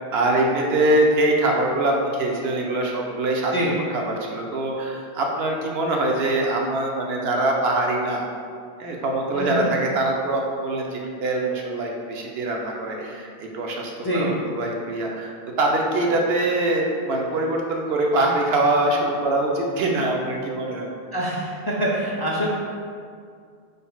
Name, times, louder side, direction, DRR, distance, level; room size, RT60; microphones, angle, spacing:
voice 1, 0.1-8.3 8.8-15.3 15.6-20.9, right 2 dB, 75° right, 0 dB, 0.9 m, -23 dB
voice 2, 9.3-9.7 14.0-14.3 21.1-22.5, right 1 dB, 35° left, -5 dB, 0.4 m, -25 dB
5.5 x 3.9 x 2.3 m, 2.2 s
omnidirectional pair, 1.1 m